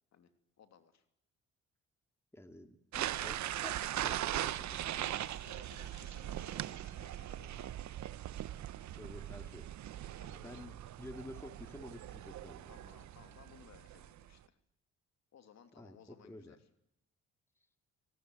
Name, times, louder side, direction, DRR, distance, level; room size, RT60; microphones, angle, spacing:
voice 1, 0.6-1.0 5.0-7.9 10.0-10.7 12.7-14.6 15.3-16.6, left 7 dB, 60° left, 8 dB, 3.0 m, -60 dB
voice 2, 2.3-4.8 9.0-9.7 9.9-12.7 15.8-16.6, left 1 dB, 10° left, 7 dB, 2.5 m, -51 dB
sound 1, 2.9-14.3, right 12 dB, 70° right, 1.0 m, -40 dB
25.5 x 18.5 x 9.5 m, 0.81 s
cardioid pair, 90°, 30 cm